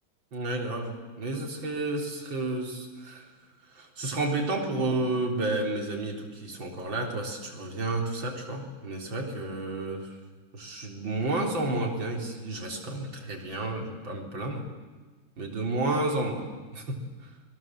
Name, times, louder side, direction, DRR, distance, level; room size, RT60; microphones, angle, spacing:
voice 1, 0.3-3.3 3.6-10.2 10.5-14.7 15.4-17.3, right 2 dB, 70° right, 1 dB, 4.4 m, -31 dB
29.0 x 22.0 x 7.6 m, 1.4 s
omnidirectional pair, 2.1 m